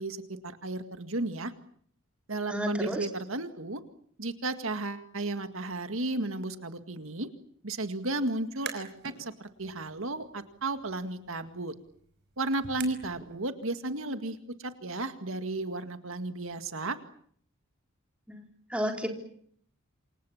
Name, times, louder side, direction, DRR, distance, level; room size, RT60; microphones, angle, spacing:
voice 1, 0.0-1.5 2.3-3.8 4.2-7.3 7.6-11.7 12.4-17.0, right 2 dB, 75° right, 9 dB, 2.0 m, -34 dB
voice 2, 2.5-3.1 18.3-18.4 18.7-19.1, equal, 5° right, 3 dB, 4.1 m, -31 dB
sound 1, 8.5-9.2 9.6-13.3, right 6 dB, 55° right, 5.3 m, -46 dB
28.0 x 26.0 x 7.3 m, 0.63 s
head